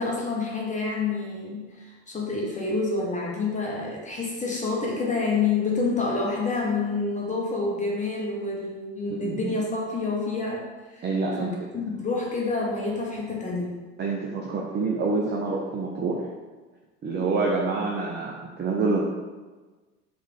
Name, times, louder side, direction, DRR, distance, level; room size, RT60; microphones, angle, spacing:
voice 1, 0.0-11.1 11.4-13.8, left 3 dB, 20° left, -3 dB, 1.0 m, -28 dB
voice 2, 9.1-9.5 11.0-11.5 14.0-16.3 17.0-19.0, right 3 dB, 30° right, -1 dB, 0.6 m, -27 dB
3.5 x 3.2 x 3.6 m, 1.3 s
hypercardioid pair, 80°, 34 cm